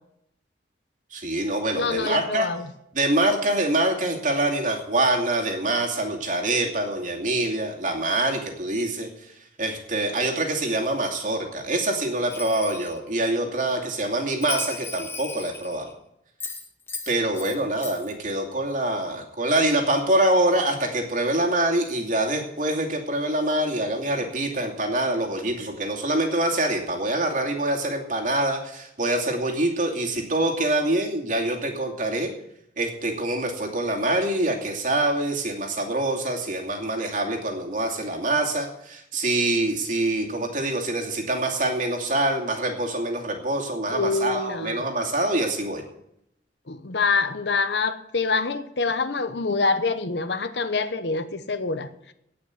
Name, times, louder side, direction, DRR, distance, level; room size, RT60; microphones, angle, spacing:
voice 1, 1.1-2.5 2.9-9.1 9.6-15.9 17.1-32.3 32.8-45.8, right 1 dB, 45° right, 1 dB, 2.5 m, -25 dB
voice 2, 1.7-2.7 43.9-44.8 46.7-52.1, left 4 dB, 75° left, 11 dB, 1.0 m, -26 dB
Bell, 12.3-13.0 14.4-15.9 16.4-17.6 17.8-18.1, left 4 dB, 15° left, 1.1 m, -36 dB
17.5 x 6.0 x 8.3 m, 0.79 s
head